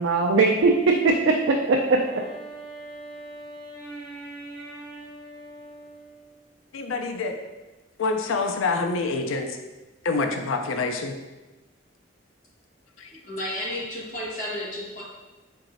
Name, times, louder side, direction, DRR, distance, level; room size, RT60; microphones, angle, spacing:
voice 1, 0.0-2.0, right 3 dB, 80° right, 1 dB, 0.4 m, -20 dB
Wind instrument woodwind instrument, 1.8-6.6, right 2 dB, 15° left, 1.3 m, -42 dB
voice 2, 6.7-7.3 8.0-9.6 10.0-11.1 13.0-13.1, left 3 dB, 90° left, 5 dB, 0.4 m, -26 dB
voice 3, 13.1-15.0, left 1 dB, 40° left, -6 dB, 1.3 m, -32 dB
4.7 x 3.8 x 2.6 m, 1.1 s
head